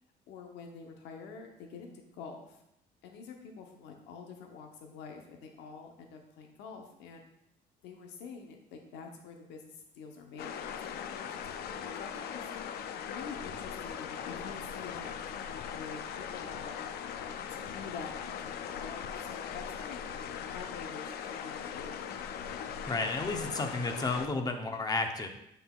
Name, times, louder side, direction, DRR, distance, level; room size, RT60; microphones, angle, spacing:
voice 1, 0.3-2.6 3.0-7.2 7.8-12.5 13.1-16.8 17.5-20.1 20.5-22.2, left 5 dB, 85° left, 3 dB, 0.8 m, -47 dB
sound 1, 10.4-24.3, left 8 dB, 70° left, 0.5 m, -40 dB
voice 2, 22.9-25.3, left 3 dB, 20° left, 5 dB, 0.8 m, -32 dB
7.8 x 5.8 x 2.4 m, 0.81 s
cardioid pair, 110°, 17 cm